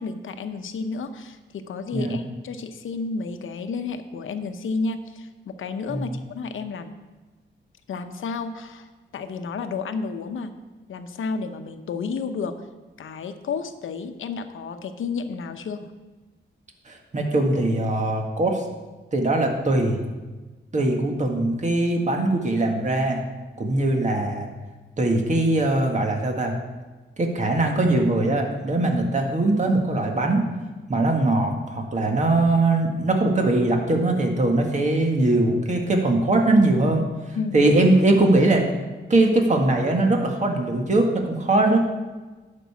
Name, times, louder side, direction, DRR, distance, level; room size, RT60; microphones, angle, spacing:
voice 1, 0.0-6.9 7.9-10.5 10.9-12.5 13.0-15.9 37.3-37.6, left 4 dB, 80° left, 8 dB, 0.8 m, -31 dB
voice 2, 16.9-18.6 19.1-20.0 20.7-23.2 23.6-24.5 25.0-26.5 27.2-30.4 30.9-37.0 37.5-38.6 39.1-41.8, right 2 dB, 35° right, 2 dB, 1.7 m, -21 dB
11.5 x 5.4 x 7.1 m, 1.2 s
cardioid pair, 95°, 20 cm